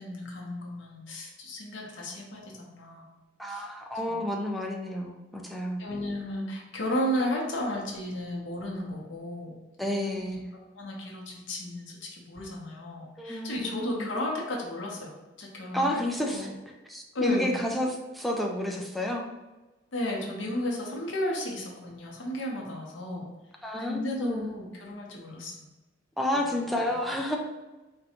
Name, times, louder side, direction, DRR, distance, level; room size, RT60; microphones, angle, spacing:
voice 1, 0.0-3.1 3.5-3.7 4.1-4.2 5.8-9.6 9.8-15.1 15.4-16.5 17.1-17.5 19.9-23.3 23.8-25.7 26.3-27.0, left 1 dB, 80° left, -1 dB, 0.8 m, -34 dB
voice 2, 3.4-5.8 9.8-10.4 13.2-14.1 15.7-16.5 16.9-17.9 18.1-19.2 23.6-24.5 26.2-27.4, left 1 dB, ahead, 0 dB, 0.4 m, -30 dB
3.9 x 2.2 x 2.8 m, 1.1 s
head